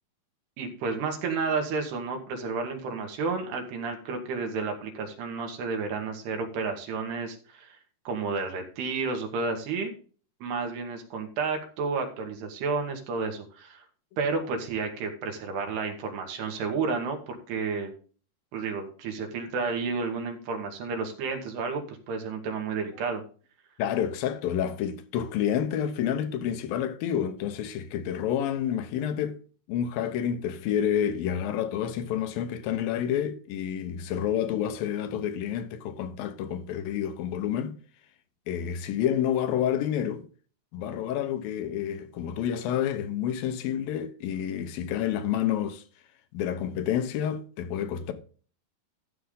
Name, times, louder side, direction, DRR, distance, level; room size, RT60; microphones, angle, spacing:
voice 1, 0.6-7.8 8.1-9.9 10.4-13.8 14.2-17.9 18.5-23.2, right 4 dB, 80° right, 3.7 m, -31 dB
voice 2, 23.8-29.4 29.7-37.8 38.5-40.2 40.7-45.8 46.3-48.1, left 9 dB, 70° left, 2.6 m, -29 dB
13.0 x 6.8 x 3.8 m
omnidirectional pair, 4.7 m